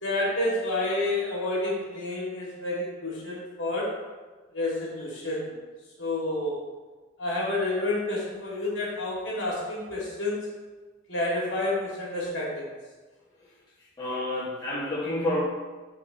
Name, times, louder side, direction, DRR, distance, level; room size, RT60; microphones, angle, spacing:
voice 1, 0.0-3.9 4.5-5.5 6.0-6.6 7.2-10.4 11.1-12.7, left 2 dB, 70° left, -5 dB, 2.1 m, -29 dB
voice 2, 14.0-15.4, left 1 dB, 20° left, -8 dB, 1.5 m, -29 dB
11.0 x 3.7 x 2.9 m, 1.3 s
head